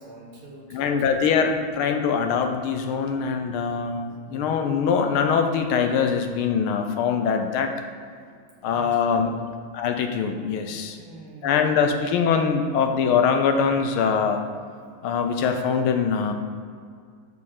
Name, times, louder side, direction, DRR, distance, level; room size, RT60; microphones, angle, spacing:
voice 1, 0.0-1.4 1.8-1.9 8.7-9.3 10.6-11.6, right 2 dB, 75° right, -2 dB, 2.0 m, -45 dB
voice 2, 0.7-7.7 8.6-9.3 9.7-11.0 11.4-14.4 15.0-16.3, left 6 dB, 85° left, 6 dB, 1.7 m, -23 dB
6.8 x 5.5 x 6.6 m, 2.1 s
omnidirectional pair, 2.3 m